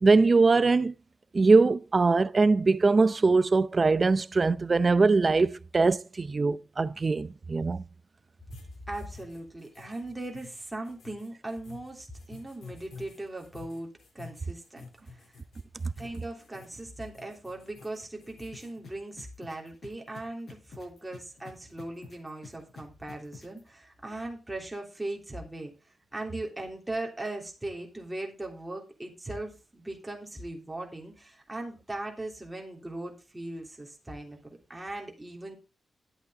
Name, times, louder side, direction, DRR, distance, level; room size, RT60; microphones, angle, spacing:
voice 1, 0.0-0.9 1.3-7.8, right 3 dB, 30° right, 0.5 m, -22 dB
sound 1, 8.5-18.7, left 5 dB, 85° left, 3.3 m, -51 dB
voice 2, 8.9-13.9 14.2-15.4 16.0-35.5, right 2 dB, 10° right, 3.3 m, -39 dB
sound 2, 18.5-23.6, left 4 dB, 60° left, 7.2 m, -48 dB
11.0 x 8.4 x 3.8 m
wide cardioid pair, 120°, 0 cm